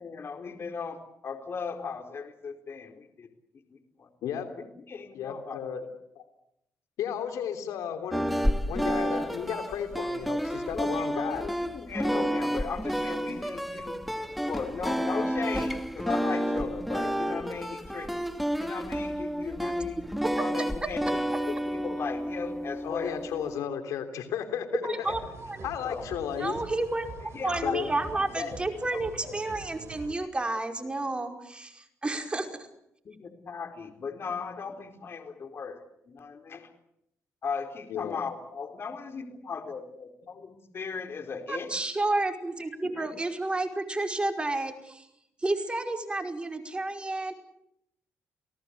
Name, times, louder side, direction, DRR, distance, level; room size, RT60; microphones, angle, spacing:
voice 1, 0.0-3.3 3.7-4.1 4.5-5.6 10.7-14.0 14.5-18.2 18.6-20.0 20.3-23.2 24.8-25.2 25.8-26.1 27.2-27.8 28.1-28.6 28.9-29.3 33.0-36.7 37.4-41.7 42.8-43.2, left 5 dB, 45° left, 6 dB, 4.4 m, -37 dB
voice 2, 5.1-5.8 6.1-6.2 7.0-8.3 8.6-11.5 22.8-25.1 25.6-26.6 27.6-27.9 37.9-38.2, left 8 dB, 85° left, 7 dB, 3.4 m, -34 dB
sound 1, 8.1-23.6, equal, ahead, 2.1 m, -30 dB
voice 3, 24.8-25.6 26.4-27.1 27.4-32.5 41.5-45.0 45.4-47.3, right 2 dB, 20° right, 4 dB, 5.2 m, -31 dB
sound 2, 25.0-30.1, right 4 dB, 55° right, 4.0 m, -45 dB
29.5 x 18.5 x 8.3 m, 0.79 s
cardioid pair, 90°, 5 cm